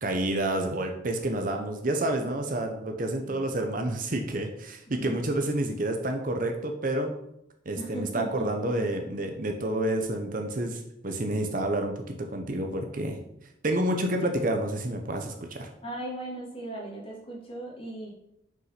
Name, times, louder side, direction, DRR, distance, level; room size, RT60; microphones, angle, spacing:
voice 1, 0.0-7.1 7.7-12.0 12.3-13.2 13.6-15.7, right 1 dB, 45° right, 4 dB, 0.8 m, -29 dB
voice 2, 7.8-8.9 15.8-18.1, right 1 dB, 30° left, -4 dB, 2.7 m, -37 dB
6.3 x 5.4 x 5.9 m, 0.81 s
head